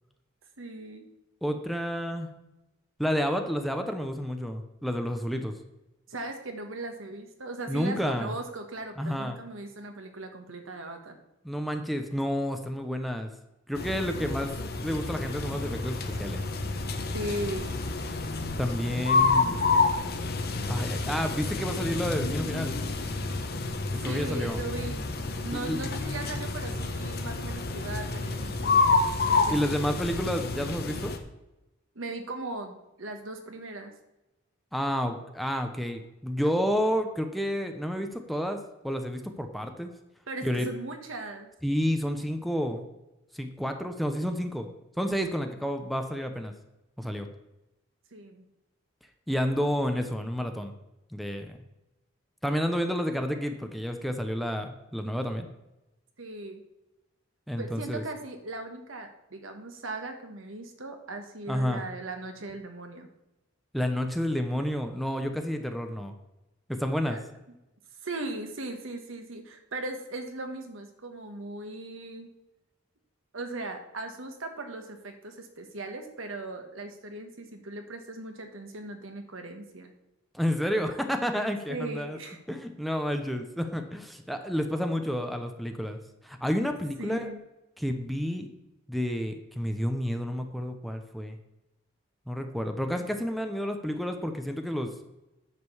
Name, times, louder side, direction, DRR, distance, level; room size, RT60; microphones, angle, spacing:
voice 1, 0.6-1.0 6.1-11.1 17.1-17.8 23.9-25.1 25.4-28.8 29.2-29.7 31.9-33.9 40.3-41.5 48.1-48.4 56.2-56.6 57.6-63.1 67.1-67.2 68.0-72.3 73.3-79.9 81.7-82.4 87.0-87.4, right 2 dB, 80° right, 5 dB, 1.4 m, -38 dB
voice 2, 1.4-2.3 3.0-5.5 7.7-8.3 9.0-9.4 11.4-13.3 13.7-14.5 14.8-16.4 18.6-19.6 20.7-22.8 24.0-24.6 25.5-25.8 29.5-31.1 34.7-38.6 38.8-39.9 40.4-40.7 41.6-42.8 43.3-44.7 45.0-46.5 47.0-47.3 49.3-50.7 51.1-51.6 52.4-55.5 57.5-58.0 61.5-61.8 63.7-66.1 66.7-67.2 80.3-82.2 82.5-86.0 86.2-87.3 87.8-88.5 88.9-91.4 92.3-94.9, equal, ahead, 5 dB, 0.8 m, -30 dB
sound 1, 13.7-31.2, left 3 dB, 50° left, 1.1 m, -29 dB
9.7 x 5.2 x 7.1 m, 0.95 s
head